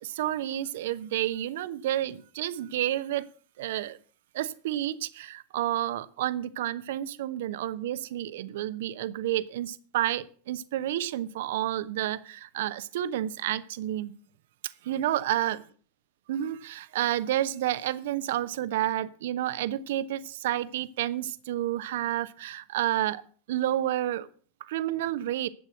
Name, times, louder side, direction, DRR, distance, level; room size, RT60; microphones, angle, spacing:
voice 1, 0.0-3.2 3.6-4.0 4.3-14.1 14.8-15.6 16.3-23.2 23.5-24.3 24.7-25.5, right 13 dB, 55° right, 14 dB, 0.9 m, -30 dB
11.5 x 8.6 x 8.0 m, 0.43 s
figure-of-eight pair, 90°, 0 cm